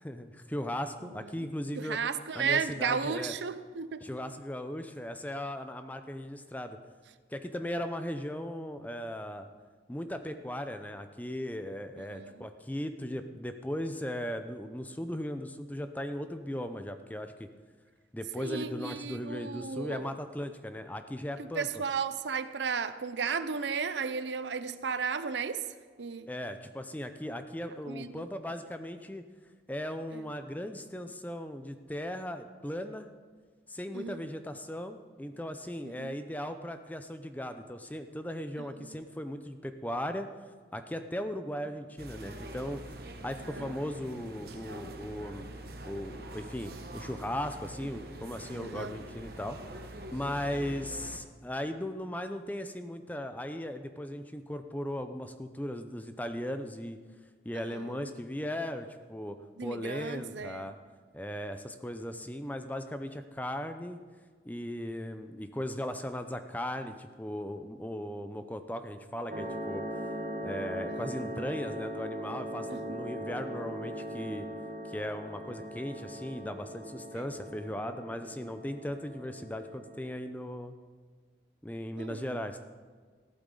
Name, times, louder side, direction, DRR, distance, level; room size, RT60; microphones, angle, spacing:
voice 1, 0.0-2.0 2.3-3.3 4.0-6.8 7.3-9.5 9.9-17.5 18.1-21.8 26.3-29.2 29.7-33.1 33.7-40.3 40.7-42.8 43.2-45.5 45.8-49.6 50.1-57.0 57.4-60.7 61.1-64.0 64.5-69.8 70.4-74.4 74.9-80.7 81.6-82.6, left 1 dB, 10° left, 0.6 m, -37 dB
voice 2, 1.0-1.5 1.8-4.1 12.1-12.5 18.4-20.1 21.4-25.7 26.0-26.3 27.9-28.3 30.1-30.3 33.9-34.2 36.0-36.1 38.8-39.0 43.6-43.7 48.5-48.9 57.7-58.1 59.6-60.7 70.9-71.1 72.7-73.0 77.2-77.3 82.0-82.4, right 6 dB, 85° right, 0.6 m, -34 dB
sound 1, 42.0-51.2, right 1 dB, 60° right, 1.1 m, -45 dB
sound 2, 69.3-80.1, equal, 40° right, 1.2 m, -40 dB
15.0 x 12.0 x 3.8 m
head